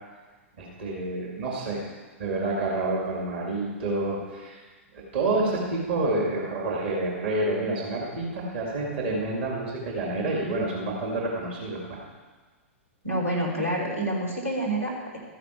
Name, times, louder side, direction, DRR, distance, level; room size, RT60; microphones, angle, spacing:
voice 1, 0.6-1.8 2.2-4.6 4.9-12.0, right 2 dB, 55° right, -2 dB, 2.5 m, -28 dB
voice 2, 13.0-15.2, right 1 dB, 90° right, -4 dB, 3.3 m, -28 dB
13.5 x 10.0 x 4.6 m, 1.3 s
figure-of-eight pair, 105°, 7 cm